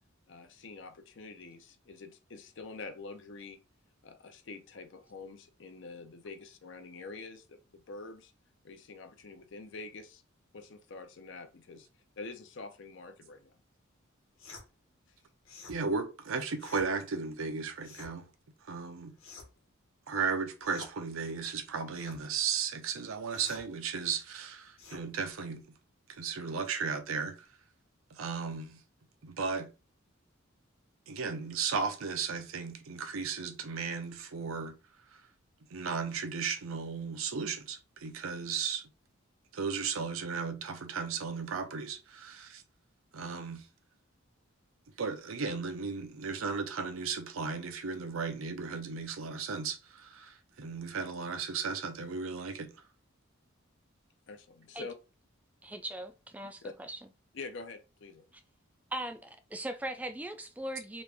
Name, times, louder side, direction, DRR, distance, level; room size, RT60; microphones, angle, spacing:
voice 1, 0.3-3.6 4.0-8.3 8.6-10.2 10.5-11.9 12.2-13.6 54.3-55.0 56.4-56.7 57.3-58.3, left 3 dB, 60° left, 0.5 m, -46 dB
sound 1, 14.4-14.7 15.4-15.8 16.6-16.9 17.8-18.1 19.2-19.6 20.6-20.9 21.9-22.2 23.3-23.7 24.8-25.0, left 3 dB, 85° left, 1.1 m, -49 dB
voice 2, 15.7-18.3 18.7-19.1 20.1-25.6 26.1-27.5 28.1-28.8 29.2-29.7 31.1-34.8 35.1-35.2 35.7-38.9 39.5-42.6 43.1-43.6 45.0-52.7, right 5 dB, 85° right, 0.6 m, -35 dB
voice 3, 55.6-57.0 58.9-61.0, right 1 dB, 5° right, 0.3 m, -39 dB
3.0 x 2.4 x 3.4 m
head